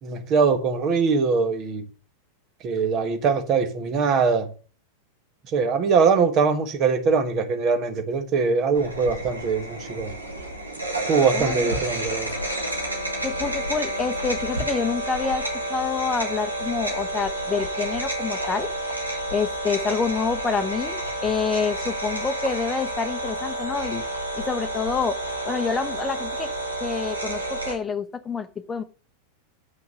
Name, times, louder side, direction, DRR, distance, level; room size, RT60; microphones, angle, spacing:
voice 1, 0.0-1.8 2.6-4.5 5.5-10.1 11.1-12.3, right 5 dB, 35° right, 1.6 m, -22 dB
sound 1, 8.7-27.8, right 1 dB, 80° right, 2.2 m, -30 dB
voice 2, 11.3-11.7 13.2-18.7 19.3-24.0 24.4-25.2 25.5-26.5 26.8-28.8, left 5 dB, 15° left, 0.9 m, -27 dB
7.9 x 5.7 x 6.7 m
figure-of-eight pair, 90°, 0 cm